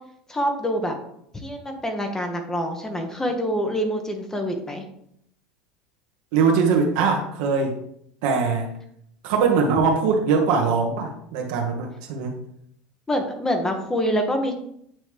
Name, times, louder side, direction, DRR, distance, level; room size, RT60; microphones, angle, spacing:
voice 1, 0.3-0.9 1.4-4.8 13.1-14.5, equal, 15° left, 4 dB, 1.1 m, -26 dB
voice 2, 6.3-7.8 8.2-8.7 9.2-12.4, right 5 dB, 70° right, 1 dB, 1.4 m, -21 dB
9.0 x 3.2 x 3.4 m, 0.71 s
hypercardioid pair, 95°, 4 cm